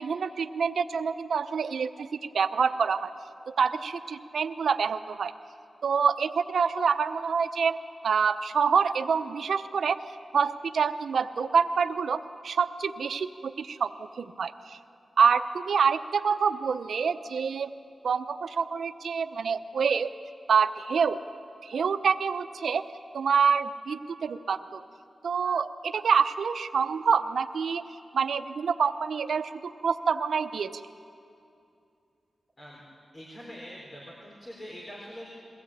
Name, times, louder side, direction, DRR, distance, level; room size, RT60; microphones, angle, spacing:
voice 1, 0.0-2.1 2.3-3.1 3.6-5.3 5.8-7.8 8.0-10.0 10.3-13.9 14.2-14.8 15.2-17.7 18.0-20.1 20.5-21.2 21.6-22.8 23.1-24.8 25.2-27.8 28.1-30.7, right 6 dB, 80° right, 11 dB, 0.8 m, -26 dB
voice 2, 33.1-35.3, equal, 35° left, -4 dB, 4.5 m, -43 dB
22.0 x 16.5 x 8.8 m, 2.6 s
wide cardioid pair, 80°, 0 cm